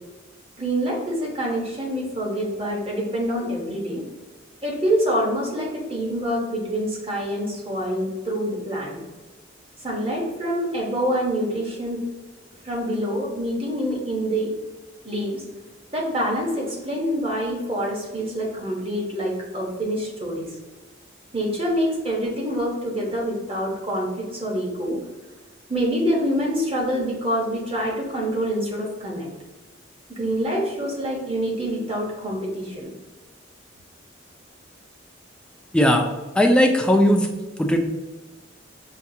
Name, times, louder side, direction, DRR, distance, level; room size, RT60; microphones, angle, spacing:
voice 1, 0.6-4.0 4.6-9.0 9.8-12.0 12.6-14.5 15.0-15.4 15.9-20.5 21.3-25.0 25.7-29.3 30.1-32.9, equal, 30° right, -2 dB, 0.9 m, -26 dB
voice 2, 35.7-36.1 36.4-37.3 37.6-37.8, equal, 5° left, 2 dB, 0.3 m, -17 dB
5.5 x 2.3 x 2.7 m, 1.2 s
head